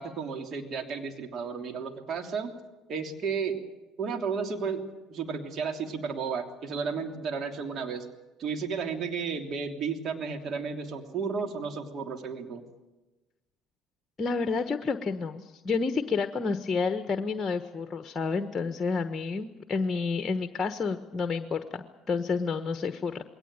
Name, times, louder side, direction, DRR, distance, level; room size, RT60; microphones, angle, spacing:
voice 1, 0.0-2.5 2.9-3.6 4.0-4.8 5.1-8.0 8.4-12.6, right 5 dB, 50° right, 5 dB, 3.1 m, -33 dB
voice 2, 14.2-23.2, left 4 dB, 30° left, 8 dB, 1.3 m, -30 dB
21.5 x 18.0 x 9.0 m, 1.1 s
hypercardioid pair, 70°, 0 cm